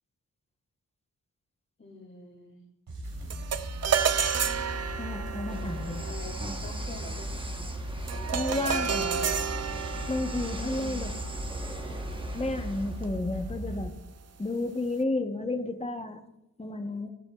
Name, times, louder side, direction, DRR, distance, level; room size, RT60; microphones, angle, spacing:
voice 1, 1.8-2.6 6.0-7.3 10.6-11.0, left 3 dB, 35° left, 1 dB, 2.4 m, -45 dB
sound 1, 2.9-13.8, right 1 dB, 85° right, 3.2 m, -37 dB
sound 2, 3.3-12.8, right 7 dB, 50° right, 0.6 m, -32 dB
voice 2, 5.0-6.0 8.3-9.2 10.1-11.1 12.3-13.9 14.4-16.2 16.6-17.1, left 2 dB, 20° left, 6 dB, 1.0 m, -32 dB
sound 3, 5.5-13.1, right 1 dB, 15° right, 1.0 m, -41 dB
22.5 x 8.7 x 2.4 m, 0.87 s
wide cardioid pair, 110°, 34 cm